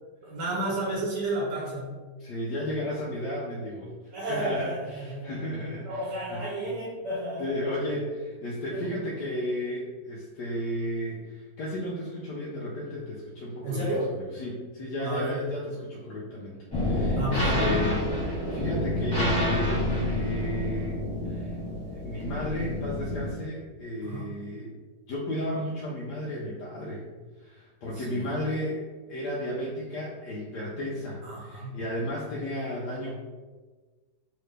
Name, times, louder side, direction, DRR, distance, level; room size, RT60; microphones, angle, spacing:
voice 1, 0.2-1.9 4.1-5.3 5.8-7.5 8.7-8.9 13.6-14.1 15.0-15.5 17.2-17.8 24.0-24.3 27.9-28.3 31.2-31.8, right 1 dB, 85° right, -5 dB, 1.5 m, -32 dB
voice 2, 2.2-6.4 7.4-13.9 14.1-21.5 21.9-24.8 25.1-27.0 27.4-33.2, left 1 dB, 75° left, -5 dB, 1.2 m, -34 dB
sound 1, 16.7-23.3, left 1 dB, 20° left, 0.8 m, -28 dB
3.2 x 2.9 x 3.2 m, 1.3 s
omnidirectional pair, 1.9 m